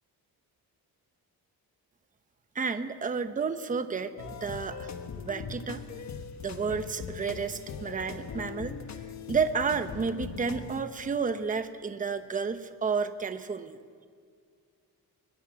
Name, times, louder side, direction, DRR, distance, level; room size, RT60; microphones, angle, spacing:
voice 1, 2.5-4.9 5.2-5.8 6.4-8.7 9.3-13.8, right 5 dB, 20° right, 9 dB, 0.8 m, -31 dB
sound 1, 4.2-10.8, left 6 dB, 45° left, 1.3 m, -40 dB
21.5 x 21.0 x 7.4 m, 2.1 s
wide cardioid pair, 175°, 38 cm